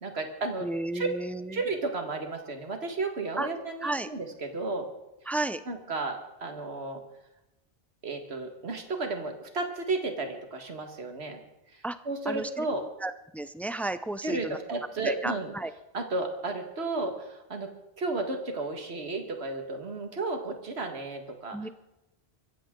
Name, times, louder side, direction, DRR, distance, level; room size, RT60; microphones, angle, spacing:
voice 1, 0.0-0.7 0.9-1.1 1.5-4.9 5.7-7.0 8.0-11.4 11.7-12.9 14.2-15.5 15.9-17.7 18.0-21.6, right 3 dB, 70° right, 5 dB, 2.1 m, -33 dB
voice 2, 0.6-1.6 3.4-3.5 3.8-4.1 5.3-5.6 11.8-12.0 12.3-12.6 13.0-14.6 15.0-15.7 21.5-21.7, right 2 dB, ahead, 12 dB, 0.4 m, -33 dB
24.0 x 16.0 x 3.8 m, 0.93 s
omnidirectional pair, 1.1 m